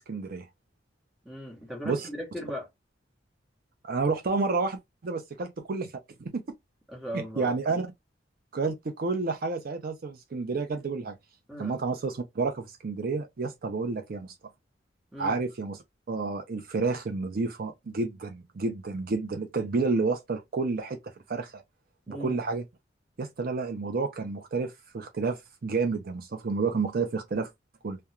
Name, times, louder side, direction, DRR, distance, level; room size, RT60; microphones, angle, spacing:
voice 1, 0.1-0.4 1.8-2.1 3.9-5.9 6.2-6.4 7.1-7.9 8.5-11.1 11.6-14.3 15.2-15.8 16.1-21.6 22.1-22.6 23.2-27.5 27.8-28.0, right 4 dB, 55° right, 0.5 m, -30 dB
voice 2, 1.2-2.7 6.9-7.5 11.5-11.8 15.1-15.4 22.1-22.4, equal, ahead, 1.1 m, -38 dB
2.4 x 2.2 x 2.9 m
head